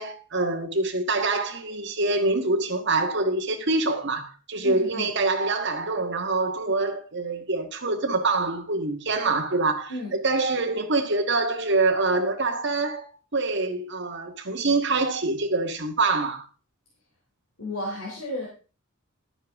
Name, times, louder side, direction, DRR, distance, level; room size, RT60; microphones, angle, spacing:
voice 1, 0.0-13.0 13.3-16.4, right 3 dB, 60° right, 1.7 m, -25 dB
voice 2, 4.6-5.1 9.9-10.2 17.6-18.5, left 1 dB, 90° left, 3.5 m, -33 dB
12.0 x 8.9 x 3.6 m
head